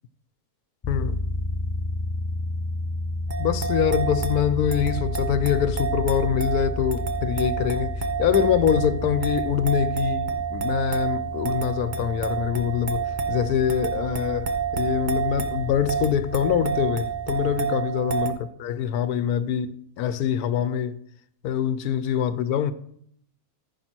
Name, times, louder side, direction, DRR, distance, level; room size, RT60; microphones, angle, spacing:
sound 1, 0.8-17.6, left 2 dB, 35° left, 0.5 m, -32 dB
voice 1, 0.9-1.2 3.4-20.9 21.4-22.7, left 9 dB, 80° left, 1.1 m, -24 dB
sound 2, 3.3-18.3, right 7 dB, 35° right, 0.9 m, -29 dB
14.0 x 5.4 x 4.5 m
omnidirectional pair, 1.6 m